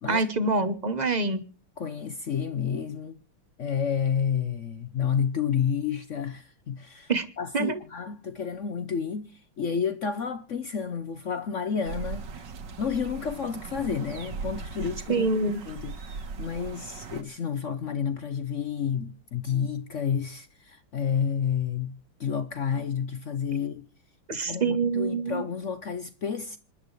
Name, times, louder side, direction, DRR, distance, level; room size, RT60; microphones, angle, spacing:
voice 1, 0.1-1.4 7.1-7.3 7.5-7.8 15.1-15.6 24.3-25.4, right 3 dB, 40° right, 0.6 m, -26 dB
voice 2, 1.8-3.2 3.6-7.1 7.4-12.5 12.8-15.3 15.7-23.8 24.3-26.6, left 7 dB, 65° left, 0.7 m, -30 dB
sound 1, 11.8-17.2, right 4 dB, 55° right, 2.0 m, -38 dB
26.5 x 11.5 x 3.2 m
omnidirectional pair, 2.4 m